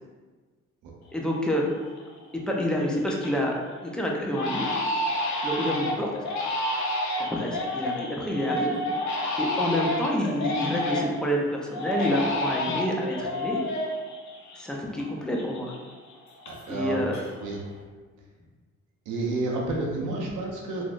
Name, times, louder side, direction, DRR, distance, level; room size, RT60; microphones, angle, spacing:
voice 1, 1.1-1.6 2.3-3.6 3.8-4.7 5.4-6.1 7.2-8.8 9.4-13.6 14.6-15.7 16.7-17.2 20.2-20.3, equal, 5° left, -2 dB, 0.5 m, -28 dB
Crying sobbing, 1.2-1.3 1.7-2.2 2.6-3.4 3.7-3.9 4.3-11.3 11.7-15.1 15.3-16.8 17.1-17.7, left 1 dB, 70° left, 0.6 m, -30 dB
voice 2, 16.5-17.0 17.4-17.6 19.1-20.9, right 2 dB, 85° right, -1 dB, 0.6 m, -30 dB
3.3 x 2.5 x 2.5 m, 1.3 s
cardioid pair, 90°, 30 cm